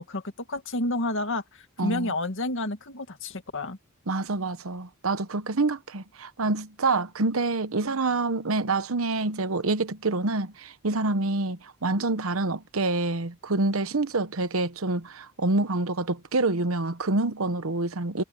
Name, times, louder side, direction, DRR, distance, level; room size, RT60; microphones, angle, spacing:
voice 1, 0.0-3.8, left 2 dB, 65° left, 2.0 m, -30 dB
voice 2, 1.8-2.1 4.1-18.2, right 3 dB, 70° right, 1.0 m, -27 dB
head